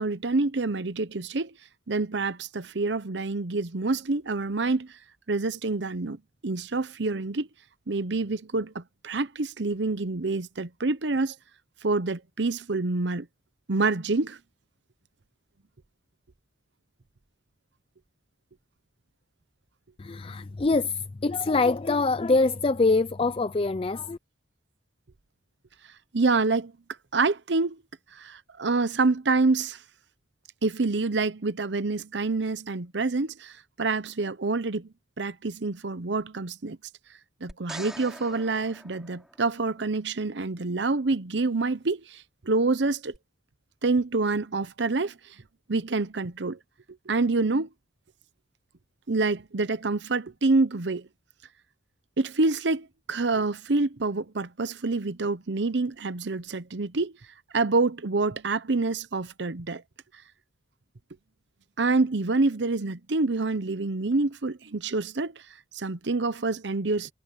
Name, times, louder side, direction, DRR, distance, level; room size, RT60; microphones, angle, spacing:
voice 1, 0.0-1.5 1.9-4.9 5.3-6.2 6.4-7.5 7.9-11.3 11.8-13.3 13.7-14.4 26.1-26.7 27.1-27.8 28.1-29.8 30.6-34.9 35.2-36.8 37.4-43.2 43.8-45.2 45.7-46.6 47.1-47.7 49.1-51.1 52.2-57.1 57.5-59.8 61.8-65.4 65.7-67.1, right 3 dB, 70° right, 0.9 m, -27 dB
voice 2, 20.0-24.2, left 3 dB, 30° left, 0.4 m, -24 dB
sound 1, 37.5-39.8 43.1-43.2, equal, 5° right, 6.5 m, -44 dB
head